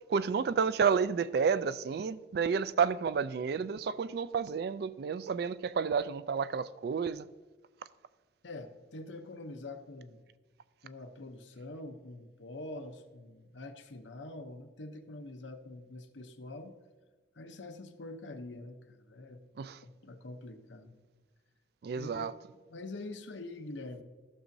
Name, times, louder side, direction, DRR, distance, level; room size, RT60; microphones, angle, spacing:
voice 1, 0.1-7.3 19.6-19.8 21.8-22.3, right 6 dB, 55° right, 0.3 m, -30 dB
voice 2, 8.4-10.2 10.8-16.8 17.4-19.4 19.8-21.0 22.0-22.3 22.5-24.0, left 2 dB, 80° left, 0.8 m, -45 dB
14.5 x 6.2 x 2.7 m
head